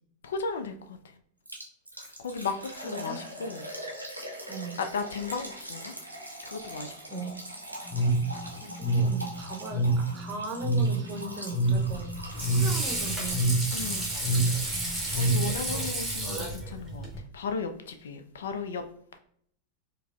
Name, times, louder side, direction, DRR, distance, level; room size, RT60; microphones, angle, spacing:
voice 1, 0.2-1.2 2.0-3.7 4.8-6.0 6.4-7.3 12.5-12.8 13.7-14.1 14.3-14.6 15.2-18.8, left 5 dB, 65° left, 0.3 m, -36 dB
Liquid, 1.5-15.9 16.1-16.2 16.7-16.8, right 1 dB, 85° right, 0.6 m, -43 dB
voice 2, 2.8-3.2 4.5-4.8 7.1-7.4 8.6-12.1 12.4-13.5, right 4 dB, 25° right, 0.7 m, -38 dB
sound 1, 7.9-15.7, right 2 dB, 35° left, 1.2 m, -27 dB
Water / Sink (filling or washing), 11.7-17.2, right 1 dB, 5° right, 1.0 m, -33 dB
4.6 x 2.0 x 2.4 m
figure-of-eight pair, 90°, 0 cm